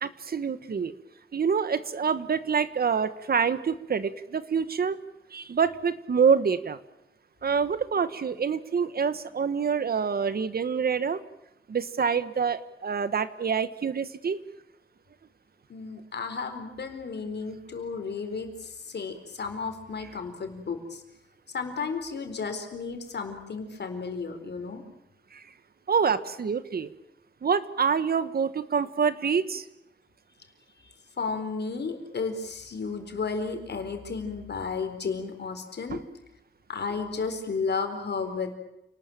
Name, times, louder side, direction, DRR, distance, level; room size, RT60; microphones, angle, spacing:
voice 1, 0.0-0.9 1.3-5.0 5.3-6.8 7.4-11.2 11.7-14.4 25.3-25.4 25.9-26.9 27.4-29.7 35.9-36.0, right 6 dB, 55° right, 13 dB, 1.3 m, -26 dB
voice 2, 15.7-21.0 21.5-24.8 30.8-36.0 36.7-38.5, left 4 dB, 65° left, 6 dB, 4.3 m, -33 dB
29.0 x 19.5 x 9.0 m, 0.87 s
wide cardioid pair, 175°, 19 cm